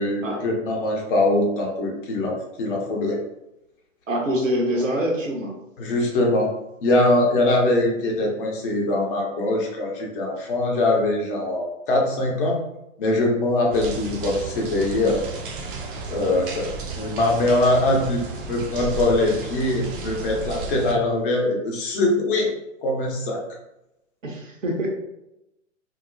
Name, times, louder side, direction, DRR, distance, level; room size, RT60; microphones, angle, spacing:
voice 1, 0.0-3.2 5.8-6.5 6.8-12.6 13.0-15.2 16.1-16.7 17.0-22.5 22.8-23.4, left 2 dB, 45° left, -1 dB, 0.8 m, -22 dB
voice 2, 4.1-5.5 24.2-24.9, equal, 85° right, -1 dB, 0.9 m, -25 dB
sound 1, 13.7-20.9, right 4 dB, 45° right, 0.5 m, -33 dB
2.8 x 2.0 x 2.5 m, 0.88 s
figure-of-eight pair, 115°, 38 cm